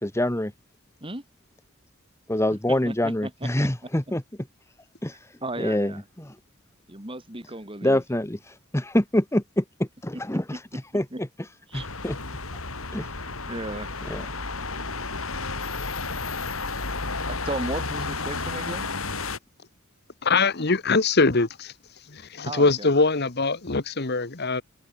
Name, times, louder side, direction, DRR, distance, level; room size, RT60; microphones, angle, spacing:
voice 1, 0.0-0.5 2.3-4.2 5.0-6.4 7.8-12.2 12.9-13.1 14.0-14.3, left 1 dB, 15° left, 1.3 m, -26 dB
voice 2, 5.4-6.0 6.9-8.0 10.5-10.6 11.1-11.2 11.7-11.9 13.4-13.9 17.3-18.9 22.4-22.9, right 2 dB, 25° right, 3.6 m, -34 dB
sound 1, 11.7-19.4, left 3 dB, 80° left, 5.7 m, -32 dB
voice 3, 20.2-21.7 22.1-24.6, left 3 dB, 50° left, 1.3 m, -22 dB
head